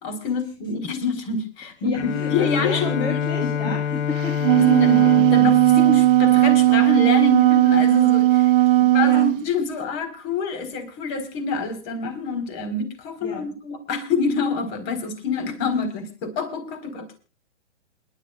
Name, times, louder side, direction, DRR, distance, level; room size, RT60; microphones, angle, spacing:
voice 1, 0.0-2.0 2.3-3.7 4.5-17.2, left 5 dB, 35° left, 8 dB, 4.3 m, -27 dB
voice 2, 1.8-4.4 8.5-9.3 13.2-13.5, left 3 dB, 10° left, 1 dB, 1.8 m, -33 dB
Bowed string instrument, 1.9-7.2, left 8 dB, 65° left, 1.1 m, -27 dB
Wind instrument woodwind instrument, 4.2-9.4, right 16 dB, 45° right, 0.8 m, -16 dB
28.0 x 11.5 x 2.4 m, 0.33 s
hypercardioid pair, 150°, 36 cm